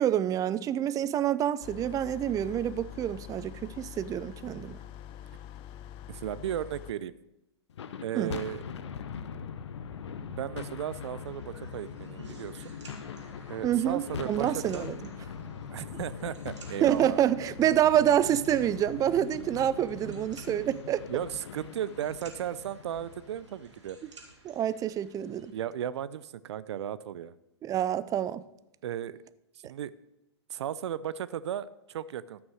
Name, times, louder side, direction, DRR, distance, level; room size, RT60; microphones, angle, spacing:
voice 1, 0.0-4.8 8.1-8.3 13.6-15.0 16.8-21.0 24.4-25.5 27.6-28.4, right 11 dB, 25° right, 0.5 m, -27 dB
sound 1, 1.6-6.9, left 11 dB, 35° left, 0.7 m, -45 dB
voice 2, 6.1-7.1 8.0-8.6 10.3-12.7 13.5-14.8 15.7-17.2 21.1-24.0 25.5-27.4 28.8-29.2 29.6-29.9 30.5-32.4, right 10 dB, 70° right, 0.6 m, -35 dB
sound 2, 7.7-24.1, left 6 dB, 75° left, 0.9 m, -42 dB
sound 3, 11.2-25.5, right 4 dB, 85° right, 2.7 m, -56 dB
13.0 x 6.1 x 6.3 m
hypercardioid pair, 115°, 15 cm